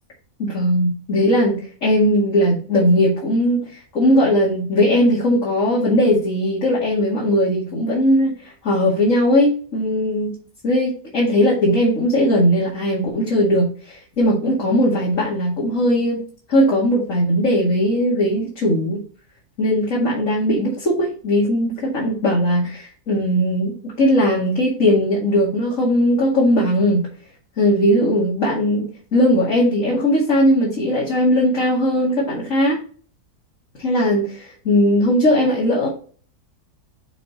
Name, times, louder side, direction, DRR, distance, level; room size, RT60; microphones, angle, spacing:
voice 1, 0.4-3.6 3.9-10.4 10.6-16.2 16.5-19.0 19.6-27.1 27.6-32.8 33.8-35.9, equal, 50° left, -6 dB, 2.6 m, -18 dB
6.8 x 4.3 x 4.3 m, 0.41 s
omnidirectional pair, 1.7 m